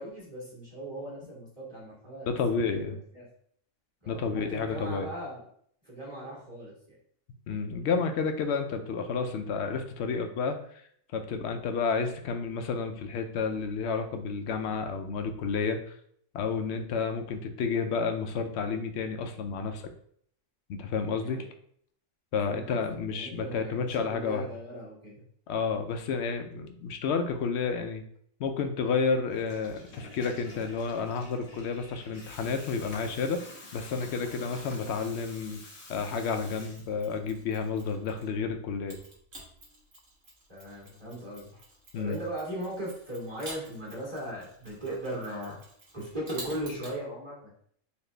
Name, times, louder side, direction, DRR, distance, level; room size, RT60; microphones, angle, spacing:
voice 1, 0.0-3.2 4.0-5.5 5.8-7.0 21.1-21.5 22.4-25.2 40.5-41.6 41.9-45.6 45.9-47.5, right 1 dB, 20° right, -7 dB, 1.6 m, -38 dB
voice 2, 2.3-3.0 4.1-5.1 7.5-10.6 11.1-15.8 16.3-19.8 20.7-21.5 22.3-24.4 25.5-28.0 28.4-33.4 33.7-35.6 35.9-39.0 41.9-42.2, left 5 dB, 65° left, 6 dB, 0.8 m, -30 dB
Water tap faucet / Toilet flush, 29.2-37.2, left 2 dB, 85° left, 1.4 m, -49 dB
Mechanisms, 36.5-38.4 38.9-47.0, right 2 dB, 70° right, 1.6 m, -49 dB
4.1 x 2.8 x 3.2 m, 0.63 s
omnidirectional pair, 1.4 m